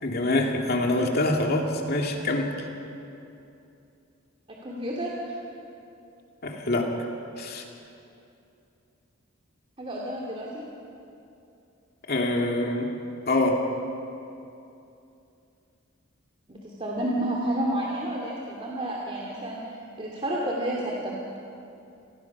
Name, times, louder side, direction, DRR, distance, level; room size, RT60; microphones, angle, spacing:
voice 1, 0.0-2.5 6.4-6.9 7.4-7.6 12.1-12.9 13.3-13.6, left 2 dB, 50° left, 1 dB, 2.5 m, -25 dB
voice 2, 4.6-5.3 9.8-10.5 16.5-19.6 20.0-21.1, right 1 dB, 25° right, -3 dB, 2.4 m, -30 dB
28.5 x 19.5 x 6.0 m, 2.7 s
head